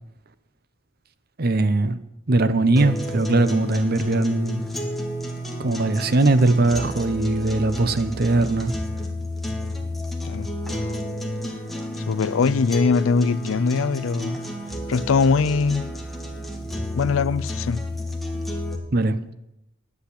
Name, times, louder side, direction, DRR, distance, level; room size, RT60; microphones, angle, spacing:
voice 1, 1.4-2.0 2.3-4.6 5.6-8.7 18.9-19.2, right 2 dB, 50° right, 0.7 m, -20 dB
sound 1, 2.8-18.8, left 1 dB, ahead, 1.3 m, -31 dB
voice 2, 12.1-14.4 14.9-15.9 16.9-17.8, left 5 dB, 80° left, 0.4 m, -21 dB
10.0 x 8.2 x 8.3 m
head